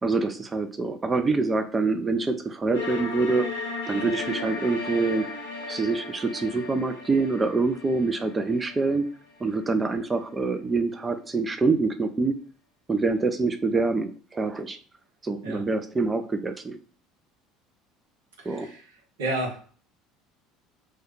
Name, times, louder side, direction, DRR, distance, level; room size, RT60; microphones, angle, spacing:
voice 1, 0.0-3.5 3.9-5.3 5.7-9.0 9.4-12.3 12.9-14.8 15.2-16.8 18.5-18.7, right 3 dB, 20° right, 8 dB, 0.4 m, -25 dB
sound 1, 2.7-9.7, left 3 dB, 75° left, 0.7 m, -36 dB
voice 2, 18.4-18.8 19.2-19.6, right 2 dB, 70° right, 1 dB, 0.9 m, -31 dB
3.1 x 2.3 x 3.1 m, 0.44 s
figure-of-eight pair, 65°, 0 cm